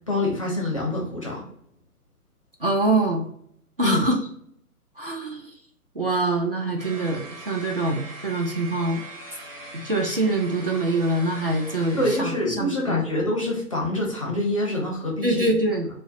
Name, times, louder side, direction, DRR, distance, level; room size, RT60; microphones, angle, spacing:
voice 1, 0.1-1.5 3.8-4.1 12.0-15.5, left 1 dB, 25° left, -2 dB, 0.5 m, -26 dB
voice 2, 2.6-3.3 3.8-4.2 5.0-5.5 6.0-9.0 9.7-13.0 15.2-15.9, right 2 dB, 40° right, 0 dB, 0.4 m, -24 dB
sound 1, 6.8-12.2, right 2 dB, 10° right, 0.7 m, -41 dB
3.8 x 2.1 x 2.4 m, 0.68 s
figure-of-eight pair, 135°, 45 cm